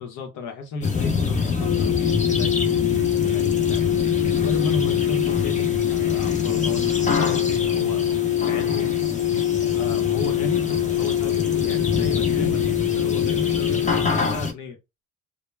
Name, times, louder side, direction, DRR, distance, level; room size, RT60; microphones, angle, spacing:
voice 1, 0.0-3.8 4.3-8.0 8.4-8.9 9.7-14.8, left 3 dB, 85° left, 0.8 m, -34 dB
sound 1, 0.8-14.5, left 4 dB, 25° left, 0.7 m, -26 dB
sound 2, 1.6-14.3, left 12 dB, 55° left, 1.1 m, -24 dB
2.2 x 2.0 x 3.2 m
cardioid pair, 90°, 30 cm